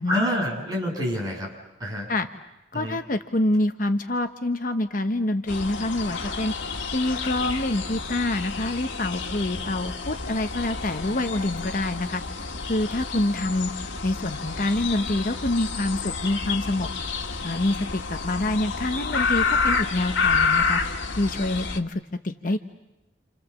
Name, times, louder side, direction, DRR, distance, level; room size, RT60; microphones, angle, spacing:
voice 1, 0.1-1.5 1.8-2.1 2.7-3.0, equal, 20° right, -2 dB, 7.9 m, -27 dB
voice 2, 2.7-6.5 6.9-12.2 12.7-13.7 14.0-16.9 17.4-20.8 21.2-22.6, left 1 dB, 45° left, 7 dB, 1.0 m, -26 dB
sound 1, 5.5-21.8, left 4 dB, 85° left, 1.8 m, -29 dB
29.0 x 28.5 x 7.3 m, 0.94 s
head